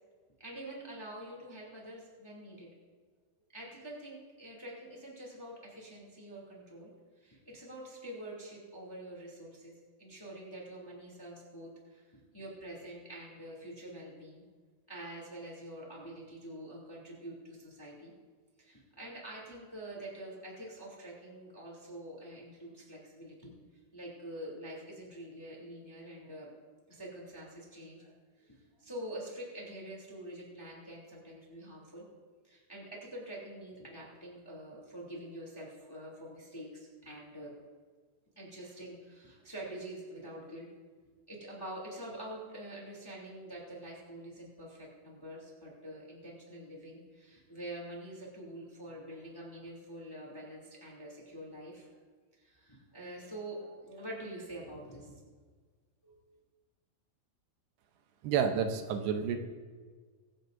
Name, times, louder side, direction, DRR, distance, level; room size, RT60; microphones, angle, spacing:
voice 1, 0.4-2.7 3.5-6.9 7.2-9.7 10.0-14.4 14.9-18.1 18.6-23.5 23.9-26.5 26.9-32.0 32.4-37.5 38.4-40.7 41.3-51.9 52.4-55.2 56.0-56.2, right 1 dB, 5° left, -3 dB, 1.9 m, -46 dB
voice 2, 58.2-59.4, right 7 dB, 85° right, 6 dB, 2.9 m, -30 dB
23.5 x 9.3 x 2.6 m, 1.5 s
omnidirectional pair, 4.7 m